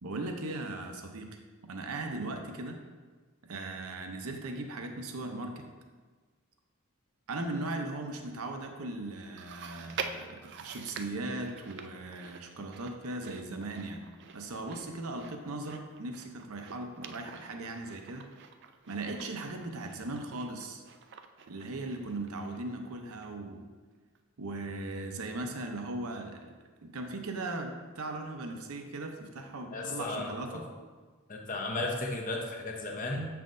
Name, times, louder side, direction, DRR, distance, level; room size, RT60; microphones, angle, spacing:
voice 1, 0.0-1.3 1.7-2.8 3.5-5.6 7.3-14.0 14.3-18.3 18.9-20.8 21.5-23.6 24.4-26.5 26.8-30.6, right 2 dB, 80° right, 4 dB, 0.7 m, -38 dB
Chewing mastication, 9.4-22.9 23.2-23.3 24.1-24.2, right 6 dB, 50° right, 0.4 m, -46 dB
voice 2, 29.7-30.6 31.3-33.3, left 2 dB, 35° left, 1 dB, 0.8 m, -35 dB
7.4 x 5.6 x 2.6 m, 1.4 s
head